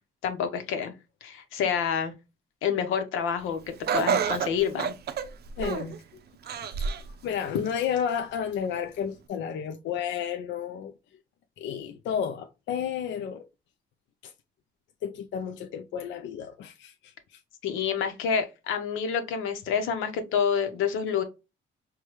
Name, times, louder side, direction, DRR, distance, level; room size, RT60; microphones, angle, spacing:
voice 1, 0.2-0.9 1.2-2.1 2.6-4.9 17.6-21.2, left 7 dB, 90° left, 0.8 m, -28 dB
Laughter, 3.9-6.0 6.5-7.1 7.6-7.7 8.6-8.7, right 7 dB, 55° right, 0.5 m, -28 dB
voice 2, 5.6-6.0 6.5-6.9 7.2-10.9 11.6-13.5 14.2-14.3 15.0-17.4, left 8 dB, 65° left, 0.4 m, -32 dB
4.6 x 2.2 x 3.0 m
cardioid pair, 90°, 20 cm